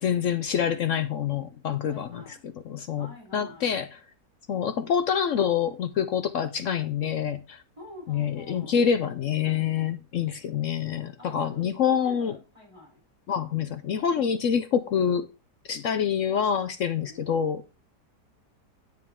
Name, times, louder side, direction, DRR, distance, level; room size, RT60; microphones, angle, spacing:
voice 1, 0.0-2.4 2.7-3.1 3.3-3.9 4.5-7.6 8.1-12.3 13.3-15.3 15.7-17.8, left 8 dB, 70° left, 0.7 m, -26 dB
voice 2, 1.9-2.5 3.0-3.7 7.8-8.8 11.2-13.0 16.9-17.5, left 1 dB, 15° right, 3.4 m, -47 dB
9.4 x 7.7 x 3.5 m
omnidirectional pair, 1.9 m